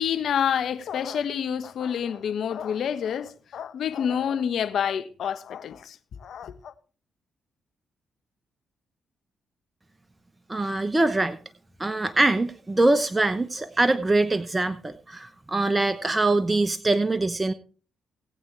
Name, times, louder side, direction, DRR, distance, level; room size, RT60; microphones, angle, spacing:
voice 1, 0.0-6.7, left 8 dB, 70° left, 1.2 m, -28 dB
voice 2, 10.5-11.4 11.8-17.5, right 2 dB, 20° right, 1.0 m, -23 dB
18.0 x 8.8 x 3.4 m
supercardioid pair, 50°, 0 cm